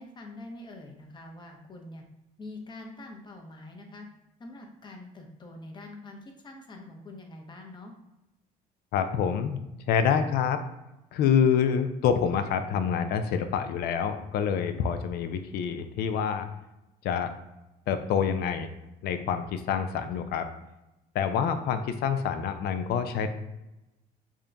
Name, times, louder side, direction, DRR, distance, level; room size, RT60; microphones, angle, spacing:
voice 1, 0.0-2.0 2.4-4.1 4.4-7.9, left 2 dB, 25° left, 2 dB, 0.7 m, -45 dB
voice 2, 8.9-10.6 11.1-16.5 17.0-17.3 17.9-18.7 19.0-20.5 21.1-23.3, left 7 dB, 70° left, 9 dB, 0.4 m, -27 dB
3.6 x 2.3 x 3.8 m, 0.96 s
cardioid pair, 110°, 17 cm